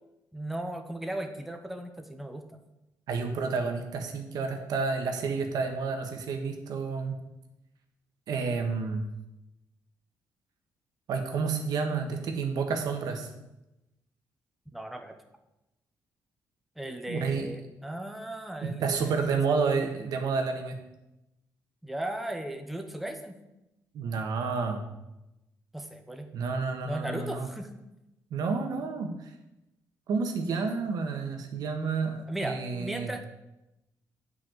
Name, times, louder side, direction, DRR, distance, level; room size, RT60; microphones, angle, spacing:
voice 1, 0.3-2.5 14.7-15.2 16.8-19.2 21.8-23.4 25.7-26.3 26.8-27.7 32.3-33.2, right 1 dB, ahead, 5 dB, 0.9 m, -36 dB
voice 2, 3.1-7.1 8.3-9.0 11.1-13.3 17.1-17.5 18.6-20.8 23.9-24.9 26.3-27.5 28.3-29.3 30.1-33.1, right 4 dB, 75° right, 4 dB, 1.5 m, -30 dB
7.9 x 5.7 x 7.9 m, 0.94 s
cardioid pair, 125°, 7 cm